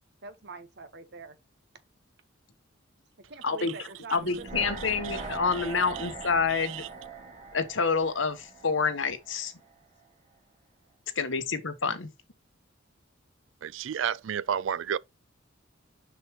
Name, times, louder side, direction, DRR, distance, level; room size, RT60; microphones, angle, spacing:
voice 1, 0.2-1.4 3.3-4.7, right 4 dB, 60° right, 1.3 m, -45 dB
voice 2, 3.4-3.7 4.1-6.8 7.5-9.5 11.2-12.1, left 5 dB, 80° left, 1.3 m, -28 dB
sound 1, 4.2-9.3 9.6-9.7, right 3 dB, 40° right, 3.9 m, -41 dB
voice 3, 5.5-6.1 6.5-6.9 13.6-15.0, right 8 dB, 80° right, 0.4 m, -32 dB
6.8 x 6.1 x 3.1 m
head